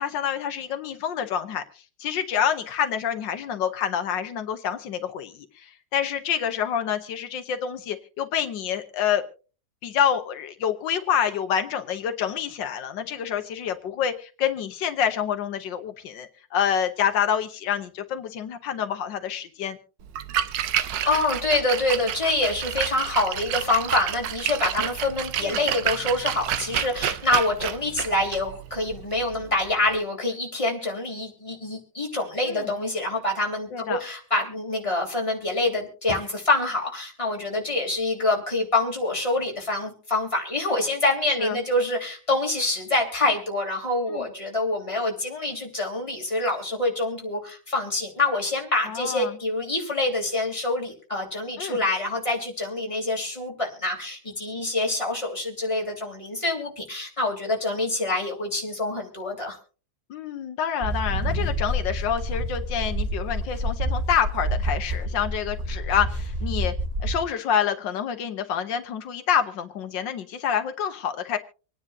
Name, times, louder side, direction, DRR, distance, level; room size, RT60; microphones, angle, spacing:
voice 1, 0.0-9.2 9.8-19.8 25.4-25.6 32.4-32.7 33.7-34.0 41.4-41.6 44.1-44.3 48.9-49.4 51.6-51.8 60.1-66.7 67.0-71.4, left 8 dB, 85° left, 8 dB, 1.7 m, -27 dB
Splash splatter, 20.0-30.0, right 10 dB, 75° right, 1.4 m, -30 dB
voice 2, 21.0-59.6, left 2 dB, 15° left, -1 dB, 3.3 m, -26 dB
sound 1, 60.8-67.2, equal, 20° right, 3.1 m, -28 dB
26.5 x 9.8 x 2.7 m, 0.36 s
omnidirectional pair, 1.9 m